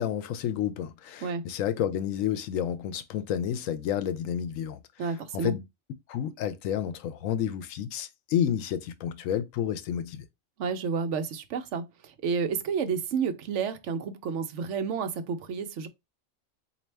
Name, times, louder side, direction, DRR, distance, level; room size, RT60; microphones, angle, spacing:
voice 1, 0.0-4.8 5.3-5.6 6.1-10.2, left 9 dB, 90° left, 1.0 m, -30 dB
voice 2, 5.0-5.5 10.6-15.9, right 5 dB, 70° right, 0.9 m, -30 dB
4.2 x 2.7 x 3.2 m
omnidirectional pair, 1.3 m